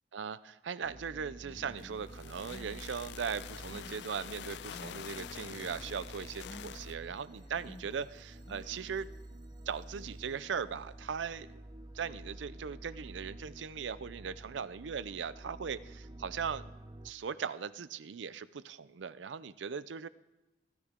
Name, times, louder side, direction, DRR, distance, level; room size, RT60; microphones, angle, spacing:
voice 1, 0.1-9.1 9.7-11.6 11.9-16.7 17.0-20.1, right 6 dB, 85° right, 16 dB, 0.5 m, -39 dB
sound 1, 0.8-17.1, right 1 dB, 25° right, 0.7 m, -50 dB
Human voice, 1.4-2.1 2.4-2.9 3.3-4.1 4.4-5.1 5.4-6.1 6.4-6.7 7.3-7.9 8.4-8.9, left 1 dB, 30° left, 1.1 m, -52 dB
sound 2, 1.8-7.0, left 9 dB, 65° left, 0.3 m, -47 dB
15.0 x 13.0 x 3.7 m, 1.1 s
head